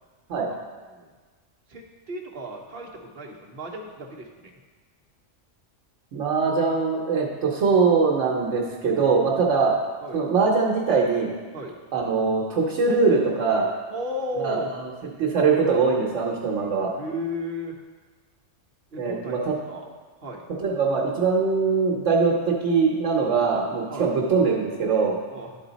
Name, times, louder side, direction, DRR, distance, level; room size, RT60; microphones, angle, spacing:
voice 1, 1.7-4.5 10.0-10.3 11.5-11.8 13.9-14.7 17.0-17.8 18.9-19.9 20.2-20.4 23.9-24.1 25.3-25.6, equal, 55° right, 0 dB, 1.1 m, -34 dB
voice 2, 6.1-9.8 10.1-11.3 11.9-13.7 14.4-14.8 15.2-16.9 19.0-19.5 20.6-25.2, right 4 dB, 75° right, -3 dB, 1.2 m, -22 dB
11.0 x 4.0 x 4.0 m, 1.4 s
omnidirectional pair, 1.3 m